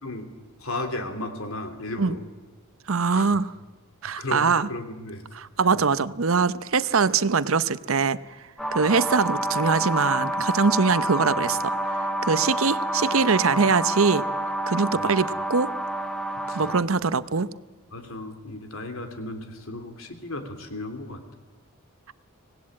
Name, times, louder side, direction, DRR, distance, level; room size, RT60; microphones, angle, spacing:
voice 1, 0.6-2.2 3.1-3.4 4.1-5.2 5.7-5.8 8.8-9.0 14.9-15.2 16.5-16.6 17.9-21.2, left 2 dB, 75° left, 7 dB, 3.1 m, -35 dB
voice 2, 2.9-3.5 4.0-4.7 5.3-8.2 8.7-11.8 12.2-14.2 14.7-15.7 16.5-17.5, right 5 dB, 70° right, 16 dB, 0.8 m, -22 dB
sound 1, 8.6-16.8, right 1 dB, 5° left, 1.4 m, -28 dB
25.0 x 18.5 x 8.7 m, 1.3 s
head